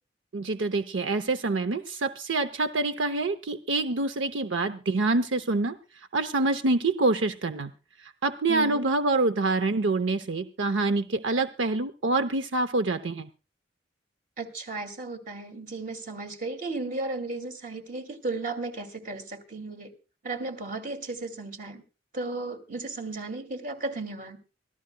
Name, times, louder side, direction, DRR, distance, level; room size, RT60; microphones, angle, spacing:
voice 1, 0.3-5.8 6.1-7.7 8.0-13.3, right 3 dB, 85° right, 10 dB, 0.7 m, -26 dB
voice 2, 8.5-8.9 14.4-19.9 20.2-21.8 22.1-24.4, right 3 dB, 45° right, 6 dB, 2.4 m, -35 dB
25.5 x 13.5 x 2.2 m, 0.33 s
head